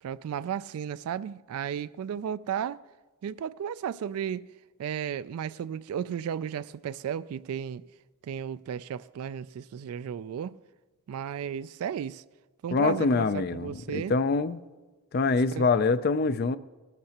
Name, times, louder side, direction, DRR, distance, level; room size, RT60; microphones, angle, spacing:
voice 1, 0.0-2.8 3.2-4.5 4.8-7.9 8.2-10.6 11.1-12.2 12.6-14.1 15.5-15.6, right 8 dB, 80° right, 0.3 m, -34 dB
voice 2, 12.7-14.6 15.1-16.6, left 4 dB, 45° left, 0.4 m, -25 dB
18.5 x 12.0 x 2.9 m
head